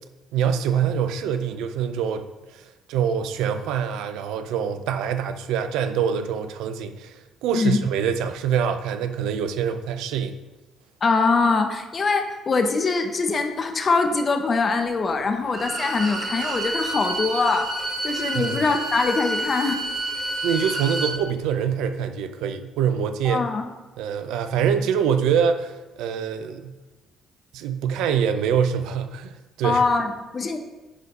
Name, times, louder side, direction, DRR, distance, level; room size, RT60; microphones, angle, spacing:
voice 1, 0.3-2.3 2.5-2.6 2.9-7.1 7.4-10.4 18.3-18.6 20.4-23.4 24.0-26.7 27.5-29.3 29.6-29.8, right 7 dB, 70° right, 9 dB, 0.6 m, -24 dB
voice 2, 11.0-17.7 18.0-19.8 23.2-23.7 29.6-30.6, left 4 dB, 40° left, 5 dB, 1.1 m, -23 dB
Bowed string instrument, 15.5-21.2, right 1 dB, 50° right, 2.0 m, -29 dB
9.9 x 4.0 x 5.2 m, 1.1 s
hypercardioid pair, 50°, 0 cm